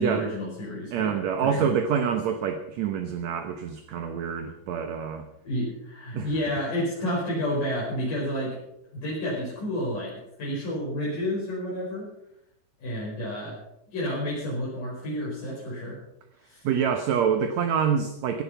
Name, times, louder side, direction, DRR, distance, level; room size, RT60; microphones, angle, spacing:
voice 1, 0.0-1.1 1.4-1.7 5.4-8.6 8.9-10.1 10.4-12.1 12.8-13.5 13.9-16.0 16.4-16.6, equal, 65° left, -6 dB, 6.8 m, -30 dB
voice 2, 0.9-5.3 6.2-6.3 16.6-18.4, right 7 dB, 65° right, 6 dB, 2.0 m, -26 dB
17.5 x 11.0 x 5.8 m, 0.81 s
omnidirectional pair, 4.0 m